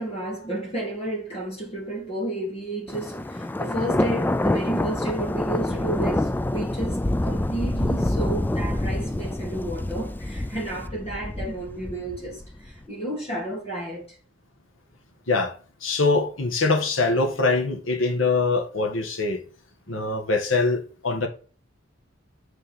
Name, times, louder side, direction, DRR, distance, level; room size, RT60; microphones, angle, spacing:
voice 1, 0.0-14.2, right 1 dB, 30° left, 2.8 m, -32 dB
Thunder, 2.9-12.7, left 1 dB, 10° left, 0.3 m, -27 dB
voice 2, 15.3-19.4 19.9-21.3, left 3 dB, 90° left, 1.8 m, -23 dB
6.2 x 5.3 x 4.4 m
head